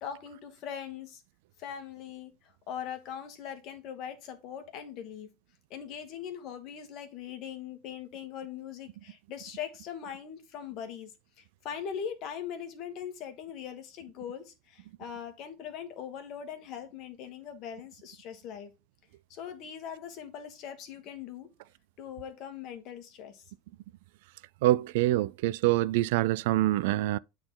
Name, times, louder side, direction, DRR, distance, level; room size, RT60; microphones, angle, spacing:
voice 1, 0.0-1.2 1.6-5.3 5.7-11.1 11.4-18.7 19.3-21.5 22.0-23.4, left 8 dB, 45° left, 1.6 m, -41 dB
voice 2, 24.6-27.2, right 16 dB, 65° right, 0.3 m, -25 dB
8.8 x 4.0 x 3.9 m
supercardioid pair, 145°, 0 cm